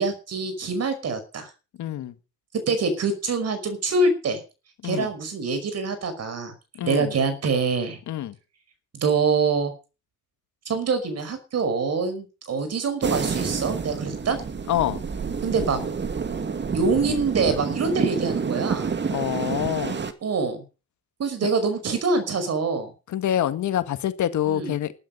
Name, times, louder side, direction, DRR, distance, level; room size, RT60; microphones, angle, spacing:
voice 1, 0.0-1.5 2.7-4.4 4.8-6.5 6.8-8.0 8.9-9.7 10.7-14.4 15.4-15.8 16.7-18.9 20.2-20.6 21.2-22.9 24.5-24.7, right 4 dB, 55° right, 5.6 m, -25 dB
voice 2, 1.8-2.2 4.8-5.1 6.7-7.1 8.1-8.4 14.7-15.0 19.1-20.0 23.1-24.9, left 11 dB, 70° left, 1.7 m, -26 dB
sound 1, 13.0-20.1, right 5 dB, 35° right, 2.3 m, -28 dB
14.0 x 12.5 x 5.4 m
cardioid pair, 90°, 30 cm